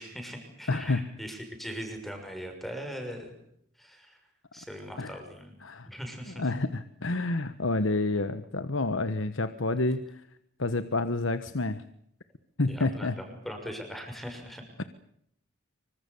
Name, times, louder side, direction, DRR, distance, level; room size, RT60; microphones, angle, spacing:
voice 1, 0.0-3.3 3.8-4.2 4.5-5.5 5.9-6.4 12.7-14.6, equal, ahead, 5 dB, 6.2 m, -40 dB
voice 2, 0.7-1.1 5.0-5.1 5.6-5.9 6.4-10.2 10.6-11.8 12.6-13.1, left 2 dB, 65° left, 11 dB, 1.3 m, -29 dB
26.5 x 25.5 x 7.0 m, 0.72 s
head